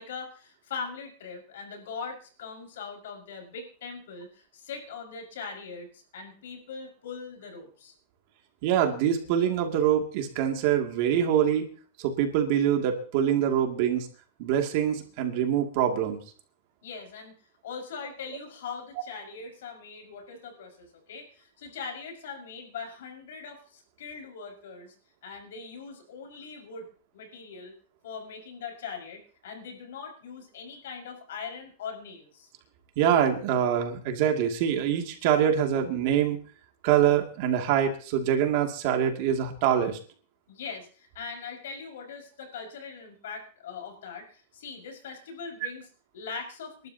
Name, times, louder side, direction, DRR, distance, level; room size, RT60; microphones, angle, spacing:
voice 1, 0.0-7.9 16.8-24.9 25.2-26.9 27.1-27.7 28.0-32.5 40.5-46.9, left 5 dB, 85° left, 2 dB, 5.6 m, -41 dB
voice 2, 8.6-11.7 12.0-14.1 14.4-16.2 33.0-36.4 36.8-40.0 45.6-45.7, right 9 dB, 45° right, 3 dB, 2.5 m, -24 dB
29.5 x 12.0 x 2.9 m, 0.40 s
supercardioid pair, 175°, 0 cm